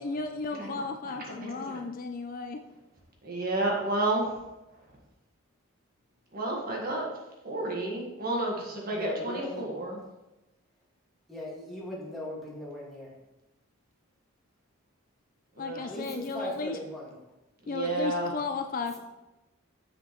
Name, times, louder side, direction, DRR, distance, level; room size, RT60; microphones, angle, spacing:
voice 1, 0.0-2.6 15.6-16.8 17.7-19.0, left 4 dB, 40° left, 6 dB, 0.4 m, -34 dB
voice 2, 1.4-1.8 3.2-4.3 6.3-7.1 7.4-10.0 15.6-15.8 17.6-18.3, right 2 dB, 45° right, -2 dB, 1.6 m, -31 dB
voice 3, 8.8-9.7 11.3-13.1 15.9-17.1, left 1 dB, ahead, -6 dB, 2.0 m, -38 dB
7.5 x 6.4 x 3.1 m, 0.98 s
head